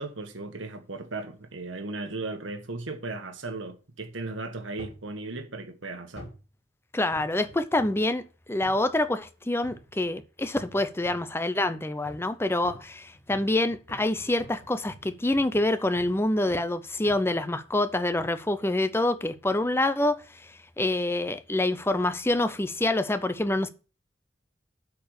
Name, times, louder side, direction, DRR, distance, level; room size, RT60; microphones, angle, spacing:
voice 1, 0.0-6.3, right 3 dB, 85° right, 1.4 m, -36 dB
sound 1, 4.8-5.1 6.1-6.5 7.1-8.1 8.6-8.8 9.6-10.0 10.5-11.3 12.0-12.3 12.6-16.2 16.5-16.7 17.1-17.5 18.2-18.4 19.3-19.6 20.2-20.3, equal, 65° left, 3.8 m, -48 dB
voice 2, 6.9-8.2 8.5-20.2 20.8-23.7, left 2 dB, 15° left, 0.6 m, -26 dB
8.5 x 4.8 x 6.5 m
head